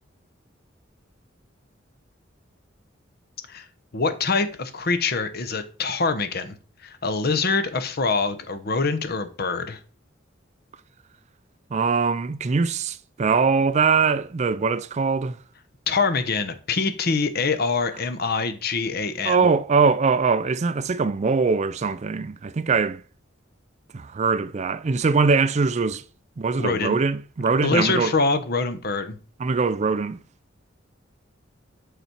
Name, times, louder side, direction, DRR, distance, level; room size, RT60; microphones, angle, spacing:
voice 1, 3.9-6.5 6.8-9.8 15.9-19.5 26.6-27.0 27.6-29.2, left 4 dB, 55° left, 0.9 m, -24 dB
voice 2, 11.7-15.4 19.2-23.0 23.9-26.0 26.4-28.1 29.4-30.2, right 4 dB, 35° right, 0.4 m, -22 dB
8.1 x 4.1 x 4.4 m
head